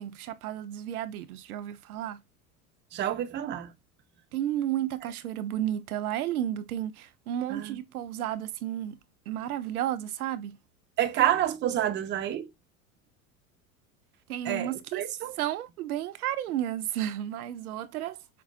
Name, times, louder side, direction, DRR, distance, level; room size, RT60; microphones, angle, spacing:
voice 1, 0.0-2.2 4.3-9.0 9.3-10.6 14.3-15.1 15.4-18.2, right 11 dB, 85° right, 0.5 m, -32 dB
voice 2, 2.9-3.7 7.5-7.8 11.0-12.5 14.5-15.3, right 11 dB, 25° right, 0.5 m, -28 dB
5.1 x 2.1 x 2.5 m
hypercardioid pair, 85°, 43 cm